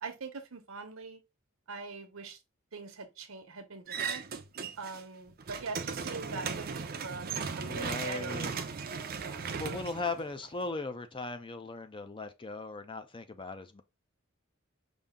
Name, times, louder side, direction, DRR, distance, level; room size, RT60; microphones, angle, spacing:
voice 1, 0.0-1.2 1.7-2.4 2.7-4.2 4.8-8.5 9.2-9.9, right 4 dB, 80° right, 0.9 m, -42 dB
sound 1, 3.9-5.0 5.3-10.7, right 5 dB, 45° right, 0.5 m, -37 dB
voice 2, 7.6-8.5 9.6-13.8, left 3 dB, 25° left, 0.5 m, -38 dB
5.4 x 2.7 x 3.5 m
head